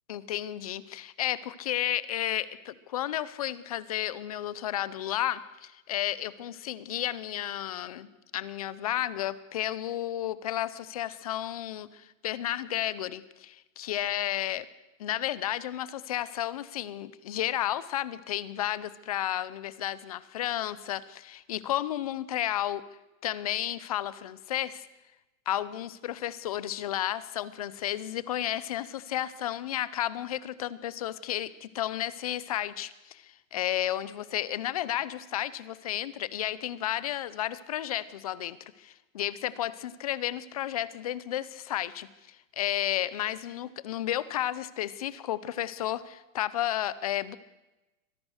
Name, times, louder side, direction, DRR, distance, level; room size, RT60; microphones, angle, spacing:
voice 1, 0.1-14.6 15.0-22.8 23.2-24.9 25.5-47.4, left 12 dB, 25° left, 18 dB, 0.6 m, -32 dB
24.5 x 18.0 x 6.5 m, 1.0 s
hypercardioid pair, 170°, 41 cm